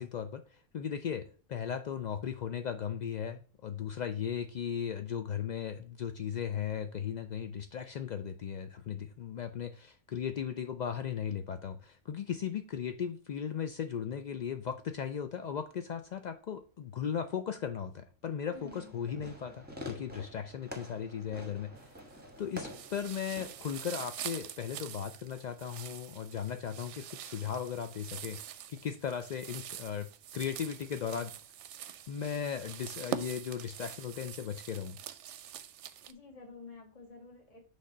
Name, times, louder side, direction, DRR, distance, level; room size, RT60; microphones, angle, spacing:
voice 1, 0.0-22.0 22.4-31.3 32.1-35.0, left 8 dB, 80° left, 0.4 m, -37 dB
voice 2, 18.5-18.9 36.0-37.6, left 4 dB, 30° left, 1.7 m, -50 dB
Fireworks, 18.5-23.7, left 1 dB, 10° right, 1.2 m, -47 dB
sound 1, 21.8-22.3 22.6-36.1, right 10 dB, 70° right, 0.8 m, -45 dB
6.3 x 3.4 x 5.3 m
omnidirectional pair, 1.3 m